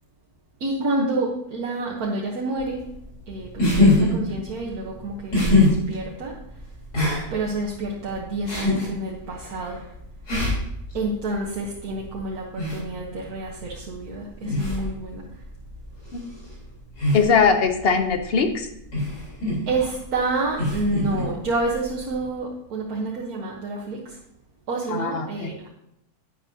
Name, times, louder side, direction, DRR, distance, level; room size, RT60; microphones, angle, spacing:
voice 1, 0.6-2.8 3.3-6.3 7.3-9.8 10.9-15.2 19.7-24.0 24.7-25.7, right 2 dB, 70° right, -3 dB, 1.6 m, -28 dB
sound 1, 2.6-22.3, left 2 dB, 90° left, 4.5 m, -26 dB
voice 2, 17.1-18.7 24.9-25.5, left 5 dB, 45° left, 7 dB, 0.9 m, -21 dB
10.5 x 9.5 x 2.8 m, 0.80 s
omnidirectional pair, 1.6 m